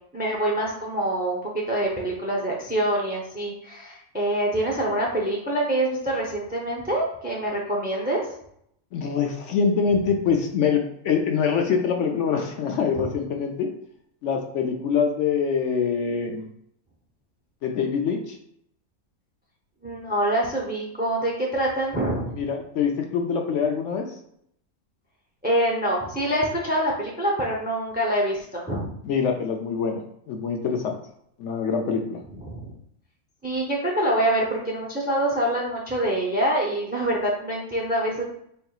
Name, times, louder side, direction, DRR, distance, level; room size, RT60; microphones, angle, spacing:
voice 1, 0.1-8.3 13.0-13.1 19.8-22.4 25.4-28.9 32.5-32.7 33.4-38.2, right 1 dB, 10° right, -2 dB, 0.4 m, -25 dB
voice 2, 8.9-13.7 14.2-16.5 17.6-18.3 22.4-24.1 29.0-30.0 30.3-31.0 31.4-32.2, left 6 dB, 70° left, 3 dB, 0.8 m, -24 dB
4.3 x 3.5 x 2.3 m, 0.70 s
omnidirectional pair, 1.5 m